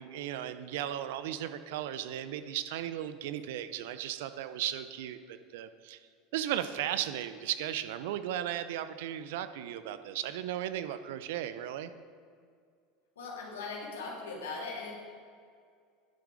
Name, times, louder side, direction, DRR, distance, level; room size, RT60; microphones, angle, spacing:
voice 1, 0.0-6.0 6.3-11.9, right 11 dB, 70° right, 12 dB, 0.5 m, -36 dB
voice 2, 13.2-14.9, left 4 dB, 80° left, -3 dB, 2.3 m, -39 dB
10.5 x 6.7 x 4.9 m, 2.2 s
hypercardioid pair, 80°, 0 cm